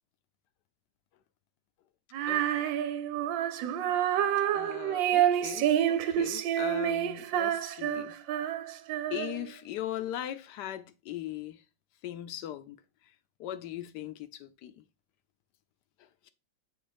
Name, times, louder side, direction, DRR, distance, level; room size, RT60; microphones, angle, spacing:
Female singing, 2.1-9.5, right 11 dB, 80° right, 1.3 m, -28 dB
voice 1, 2.3-2.7 4.5-8.2 9.1-11.6 12.0-12.8 13.4-14.8, left 12 dB, 70° left, 1.2 m, -39 dB
7.2 x 3.2 x 5.0 m
omnidirectional pair, 2.1 m